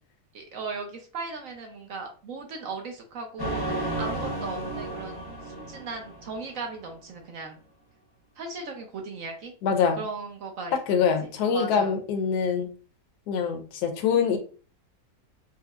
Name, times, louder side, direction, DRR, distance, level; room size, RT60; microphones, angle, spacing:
voice 1, 0.3-7.6 8.4-9.5 10.0-11.1 11.5-12.0, right 3 dB, 65° right, 3 dB, 1.0 m, -37 dB
sound 1, 3.4-6.8, right 1 dB, 20° left, 0.6 m, -33 dB
voice 2, 9.6-10.0 10.9-12.7 13.3-14.4, left 6 dB, 75° left, 5 dB, 1.2 m, -24 dB
4.4 x 2.0 x 2.3 m, 0.38 s
omnidirectional pair, 1.7 m